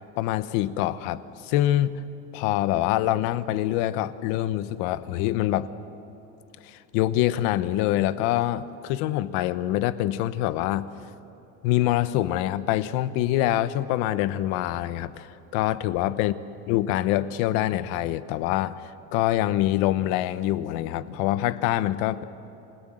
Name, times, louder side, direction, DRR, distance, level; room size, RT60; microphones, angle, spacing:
voice 1, 0.2-1.9 2.3-5.7 6.6-10.9 11.6-16.3 16.7-22.2, left 14 dB, 80° left, 14 dB, 1.0 m, -25 dB
28.0 x 18.5 x 7.9 m, 2.9 s
cardioid pair, 160°, 31 cm